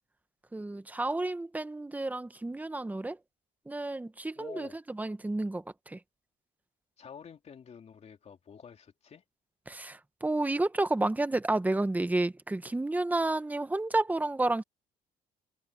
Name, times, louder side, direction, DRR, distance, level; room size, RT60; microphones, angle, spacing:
voice 1, 0.5-3.2 3.7-4.7 5.0-6.0 9.7-14.6, right 2 dB, 10° right, 1.1 m, -31 dB
voice 2, 4.3-4.8 7.0-9.2, left 7 dB, 40° left, 3.0 m, -49 dB
cardioid pair, 110°, 17 cm